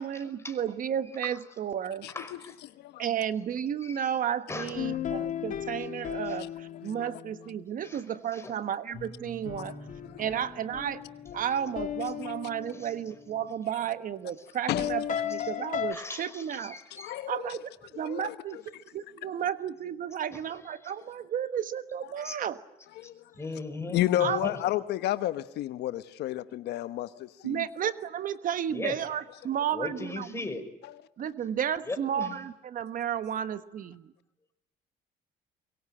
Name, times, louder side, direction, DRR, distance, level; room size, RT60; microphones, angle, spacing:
voice 1, 0.0-2.1 3.0-9.7 10.2-11.0 11.3-16.8 17.3-17.7 17.9-22.6 24.2-24.5 27.4-30.4 31.2-34.1, right 9 dB, 55° right, 1.3 m, -33 dB
voice 2, 2.1-2.5 3.8-4.0 4.5-5.0 7.8-8.0 8.3-8.5 12.7-12.9 15.9-17.3 22.2-22.3 23.4-24.5 28.7-28.9 29.7-30.6 31.8-32.4, left 3 dB, 15° left, 4.9 m, -38 dB
sound 1, 4.8-7.6 8.9-13.5 14.7-15.9, left 9 dB, 50° left, 2.7 m, -36 dB
voice 3, 16.9-17.6 18.0-18.3 23.0-23.1 23.9-27.6 30.8-30.9, left 14 dB, 80° left, 1.1 m, -31 dB
23.5 x 23.0 x 10.0 m
cardioid pair, 110°, 17 cm